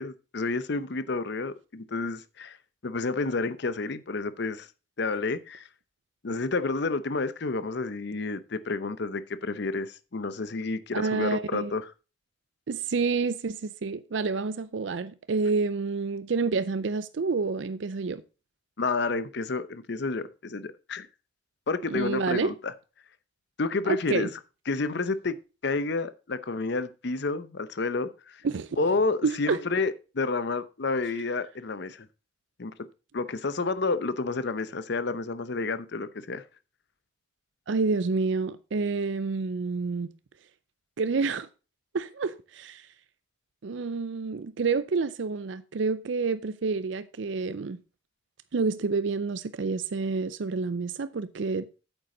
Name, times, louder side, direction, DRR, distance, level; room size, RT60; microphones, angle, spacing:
voice 1, 0.0-2.6 2.8-4.7 5.0-5.7 6.2-11.9 18.8-21.1 21.7-22.7 23.6-24.3 24.7-25.4 25.6-28.4 28.8-32.1 32.6-32.7 33.1-36.4, left 3 dB, 60° left, 0.7 m, -30 dB
voice 2, 10.9-11.7 12.7-18.2 21.9-22.5 23.9-24.3 28.4-28.7 29.2-29.6 37.7-40.1 41.0-41.5 41.9-42.9 43.6-47.8 48.5-51.7, right 4 dB, 65° right, 0.5 m, -28 dB
8.5 x 8.0 x 3.8 m
head